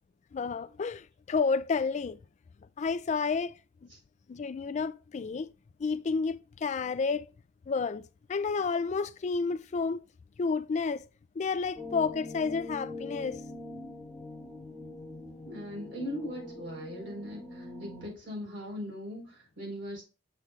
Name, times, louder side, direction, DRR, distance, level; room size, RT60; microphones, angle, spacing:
voice 1, 0.3-2.2 2.8-3.5 4.3-5.5 5.8-7.3 7.7-8.0 8.3-10.0 10.4-11.1 11.4-13.4, left 4 dB, 40° left, 0.3 m, -30 dB
sound 1, 11.8-18.1, left 2 dB, ahead, 1.5 m, -43 dB
voice 2, 15.4-20.0, equal, 70° right, 3.9 m, -39 dB
7.0 x 5.8 x 2.4 m
head